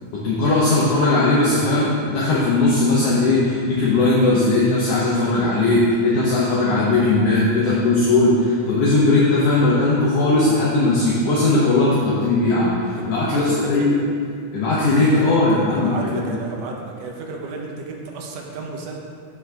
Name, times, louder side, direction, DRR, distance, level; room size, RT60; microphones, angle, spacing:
voice 1, 0.1-13.9 14.5-16.2, left 2 dB, 70° left, -7 dB, 1.8 m, -18 dB
voice 2, 13.0-14.1 14.8-19.0, right 4 dB, 70° right, 0 dB, 1.9 m, -33 dB
12.0 x 6.0 x 2.3 m, 2.2 s
omnidirectional pair, 3.4 m